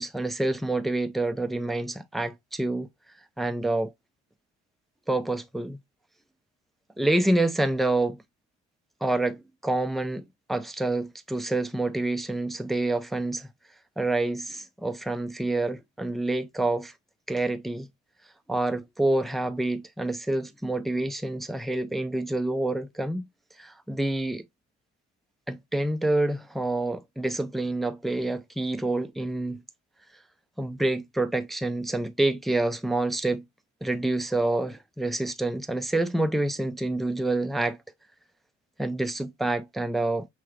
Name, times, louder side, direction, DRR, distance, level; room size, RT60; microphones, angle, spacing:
voice 1, 0.0-2.9 3.4-3.9 5.1-5.8 7.0-8.2 9.0-13.5 14.0-16.9 17.3-17.9 18.5-23.2 23.6-24.4 25.5-29.6 30.6-33.4 33.8-37.8 38.8-40.3, right 2 dB, ahead, 0.4 m, -27 dB
5.7 x 3.1 x 2.4 m
cardioid pair, 90°, 30 cm